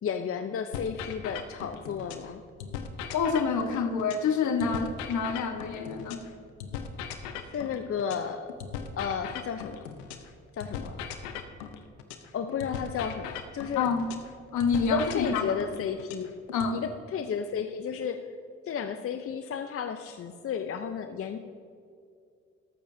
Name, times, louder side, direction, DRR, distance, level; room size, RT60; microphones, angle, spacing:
voice 1, 0.0-2.4 7.5-8.5 9.0-9.9 10.5-11.0 12.3-13.9 14.8-16.3 16.7-18.2 18.7-21.4, left 7 dB, 45° left, 7 dB, 0.7 m, -33 dB
sound 1, 0.7-2.3 2.6-6.3 6.6-10.3 10.6-14.3 14.6-16.7, left 7 dB, 90° left, 0.8 m, -39 dB
voice 2, 3.1-6.2 13.8-14.1 14.5-15.6 16.5-16.8, left 5 dB, 65° left, 6 dB, 1.3 m, -27 dB
14.0 x 12.0 x 2.7 m, 2.4 s
hypercardioid pair, 60°, 32 cm